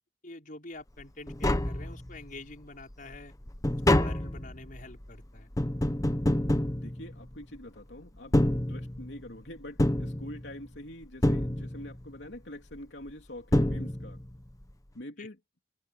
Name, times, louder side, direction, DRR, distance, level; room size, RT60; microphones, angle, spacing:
voice 1, 0.2-3.3 3.9-5.5 15.2-15.3, left 2 dB, 50° left, 5.2 m, -46 dB
Tap, 1.0-1.1 1.3-2.4 2.8-7.6 8.2-9.2 9.8-10.8 11.2-12.1 13.1-13.2 13.5-14.3 14.6-14.7, left 1 dB, 20° left, 1.1 m, -28 dB
voice 2, 6.7-14.2 14.9-15.4, left 1 dB, 75° left, 3.3 m, -45 dB
head